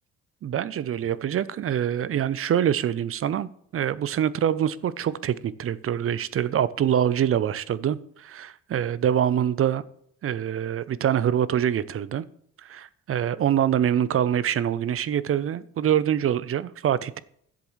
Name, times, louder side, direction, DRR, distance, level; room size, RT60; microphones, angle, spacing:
voice 1, 0.4-9.8 10.2-12.2 12.6-17.2, right 9 dB, 50° right, 18 dB, 0.6 m, -25 dB
11.0 x 7.6 x 3.1 m, 0.65 s
cardioid pair, 90°, 30 cm